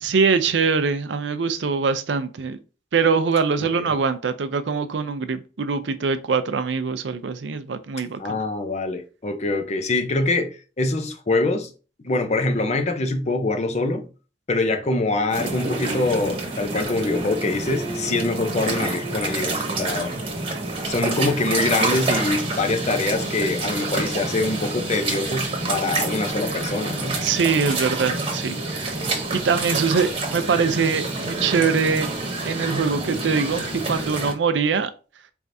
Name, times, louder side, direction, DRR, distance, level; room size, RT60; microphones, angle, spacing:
voice 1, 0.0-2.6 2.9-8.4 27.2-29.0 29.3-32.1 32.4-34.9, right 5 dB, 85° right, 0.5 m, -23 dB
voice 2, 3.6-3.9 8.2-11.7 12.0-14.1 14.5-20.1 20.8-27.2, left 2 dB, 40° left, 0.6 m, -24 dB
sound 1, 15.3-34.3, right 2 dB, 30° right, 1.1 m, -28 dB
4.4 x 3.5 x 2.6 m
head